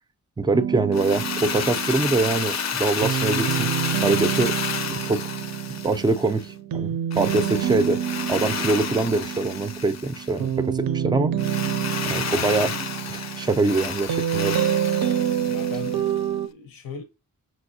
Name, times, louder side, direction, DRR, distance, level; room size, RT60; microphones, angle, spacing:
voice 1, 0.4-3.7 4.0-4.5 4.9-5.3 5.8-8.0 8.3-11.4 12.1-12.8 13.1-14.6, right 3 dB, 15° right, 0.3 m, -24 dB
sound 1, 0.5-16.5, right 9 dB, 90° right, 0.5 m, -28 dB
Drill, 0.9-6.5 7.1-10.4 11.4-16.2, left 7 dB, 50° left, 0.5 m, -31 dB
voice 2, 15.5-17.0, left 6 dB, 90° left, 0.7 m, -39 dB
6.0 x 2.6 x 2.6 m
wide cardioid pair, 130°, 34 cm